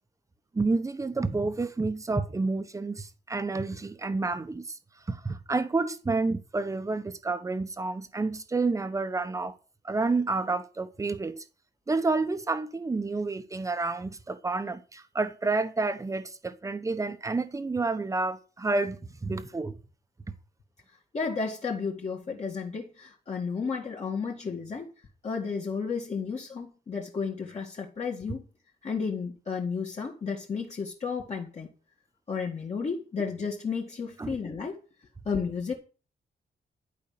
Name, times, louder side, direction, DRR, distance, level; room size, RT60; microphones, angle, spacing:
voice 1, 0.5-4.8 5.1-9.5 9.8-11.4 11.9-19.8 34.2-34.3, right 3 dB, 15° right, 1.0 m, -29 dB
voice 2, 21.1-24.9 25.2-28.5 28.8-31.7 32.3-34.8 35.3-35.7, left 5 dB, 40° left, 2.1 m, -32 dB
11.5 x 5.5 x 9.0 m
wide cardioid pair, 170°, 18 cm